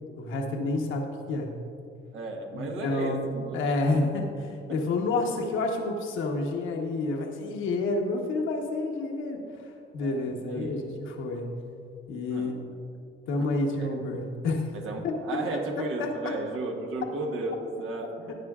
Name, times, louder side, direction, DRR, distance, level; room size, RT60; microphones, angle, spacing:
voice 1, 0.2-1.5 2.5-11.4 12.1-12.5 13.3-14.7 15.0-15.4 15.8-16.4, left 2 dB, 80° left, 1 dB, 1.1 m, -29 dB
voice 2, 2.1-3.6 4.0-4.1 4.7-4.8 10.0-10.8 12.3-12.6 13.3-14.0 14.7-18.4, right 3 dB, 85° right, 2 dB, 1.4 m, -35 dB
15.5 x 9.5 x 2.4 m, 2.4 s
cardioid pair, 90°, 20 cm